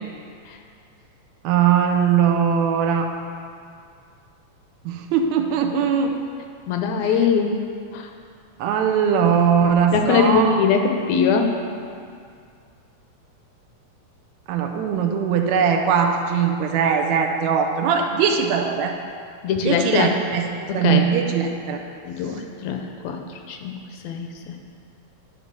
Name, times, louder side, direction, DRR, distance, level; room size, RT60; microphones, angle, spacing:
voice 1, 1.4-3.1 4.9-6.1 8.6-10.7 14.5-19.0 19.6-21.8, right 7 dB, 80° right, 4 dB, 1.8 m, -20 dB
voice 2, 6.7-8.1 9.9-11.5 19.4-20.1 20.7-21.1 22.1-23.8 24.0-24.6, left 6 dB, 80° left, 4 dB, 1.8 m, -22 dB
10.5 x 3.9 x 6.0 m, 2.3 s
omnidirectional pair, 3.3 m